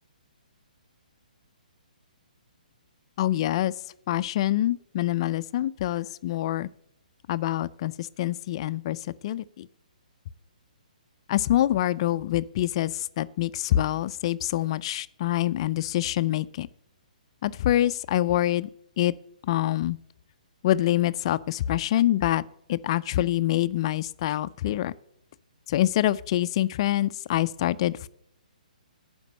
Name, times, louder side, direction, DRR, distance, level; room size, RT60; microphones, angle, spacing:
voice 1, 3.2-3.7 4.1-6.7 7.3-9.7 11.3-16.7 17.4-18.7 19.0-19.1 19.5-20.0 20.6-22.4 22.7-24.9 25.7-28.1, left 13 dB, 40° left, 15 dB, 0.4 m, -25 dB
11.5 x 5.1 x 8.6 m, 0.72 s
hypercardioid pair, 140°, 5 cm